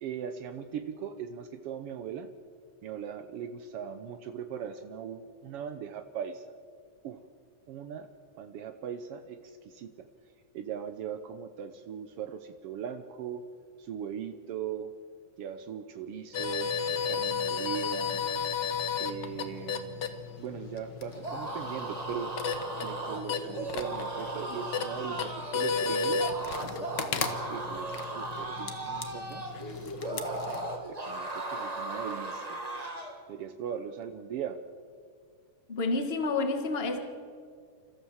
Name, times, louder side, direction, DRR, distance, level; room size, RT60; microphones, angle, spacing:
voice 1, 0.0-2.3 2.8-6.5 7.0-7.2 7.7-8.1 8.4-10.1 10.5-13.5 13.8-14.9 15.4-16.7 17.0-18.2 19.0-20.1 20.4-22.3 22.8-26.3 26.6-29.4 30.1-30.3 30.9-32.6 33.3-34.6, right 8 dB, 75° right, 8 dB, 1.3 m, -39 dB
sound 1, 16.3-30.8, left 5 dB, 60° left, 1.1 m, -34 dB
sound 2, 21.1-33.2, right 2 dB, 30° right, 0.7 m, -37 dB
voice 2, 35.7-37.0, left 3 dB, 30° left, 6 dB, 1.2 m, -29 dB
28.0 x 14.0 x 7.2 m, 2.1 s
omnidirectional pair, 3.6 m